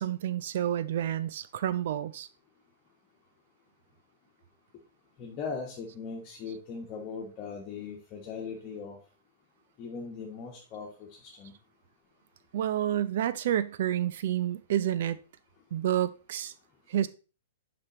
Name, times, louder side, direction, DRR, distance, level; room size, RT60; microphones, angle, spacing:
voice 1, 0.0-2.3 12.5-15.2 15.7-16.5 16.9-17.1, right 11 dB, 60° right, 0.5 m, -29 dB
voice 2, 5.2-9.0 9.8-11.5, left 5 dB, 35° left, 1.3 m, -39 dB
6.6 x 5.1 x 3.0 m
hypercardioid pair, 120°, 0 cm